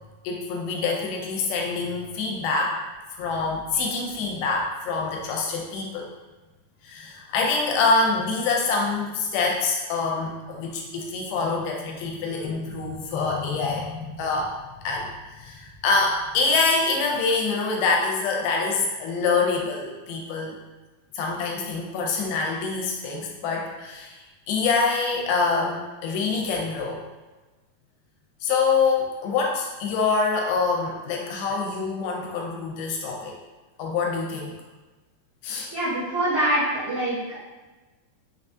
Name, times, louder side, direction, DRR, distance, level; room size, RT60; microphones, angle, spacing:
voice 1, 0.2-2.8 3.1-6.1 6.8-14.6 14.8-20.6 21.1-24.2 24.5-27.0 28.4-33.4 33.8-34.5 35.4-35.7, left 4 dB, 85° left, -1 dB, 2.5 m, -25 dB
voice 2, 35.7-37.4, right 1 dB, 65° right, -12 dB, 1.3 m, -25 dB
5.9 x 2.3 x 2.5 m, 1.2 s
omnidirectional pair, 4.3 m